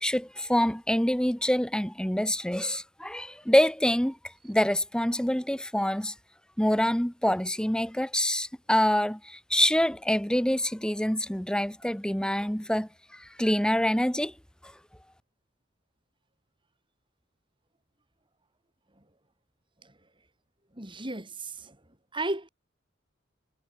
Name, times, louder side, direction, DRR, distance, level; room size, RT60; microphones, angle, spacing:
voice 1, 0.0-4.2 4.4-6.1 6.6-12.9 13.2-14.3, left 1 dB, 5° left, 1.3 m, -26 dB
voice 2, 20.7-21.8 22.1-22.5, right 2 dB, 25° right, 6.5 m, -34 dB
head